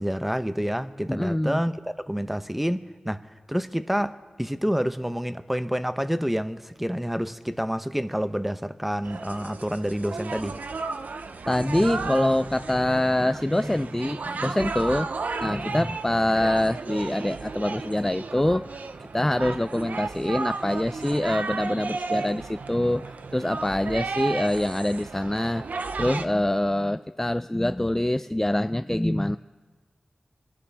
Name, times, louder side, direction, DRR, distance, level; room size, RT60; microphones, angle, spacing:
voice 1, 0.0-1.7 2.1-3.2 3.5-4.1 4.4-10.6, equal, 5° right, 11 dB, 0.7 m, -28 dB
voice 2, 1.1-1.6 11.5-15.1 15.4-25.6 26.0-29.4, left 1 dB, 10° left, 12 dB, 0.3 m, -25 dB
sound 1, 9.0-26.2, right 4 dB, 85° right, 0.6 m, -34 dB
23.5 x 11.0 x 3.5 m, 1.4 s
cardioid pair, 45°, 3 cm